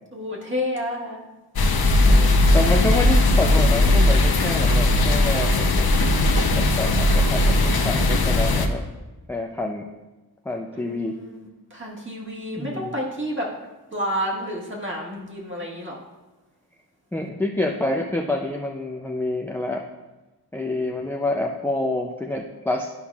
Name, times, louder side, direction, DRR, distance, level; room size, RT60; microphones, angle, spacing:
voice 1, 0.1-1.2 10.8-13.5 13.9-16.0, equal, 30° right, -4 dB, 1.7 m, -30 dB
sound 1, 1.6-8.7, left 2 dB, 65° left, 0.8 m, -18 dB
voice 2, 2.1-5.9 6.2-8.8 9.3-9.9 10.4-11.2 12.6-12.9 17.1-19.9 20.5-22.9, left 1 dB, 5° left, 2 dB, 0.4 m, -28 dB
11.5 x 5.5 x 2.4 m, 1.1 s
wide cardioid pair, 115°, 40 cm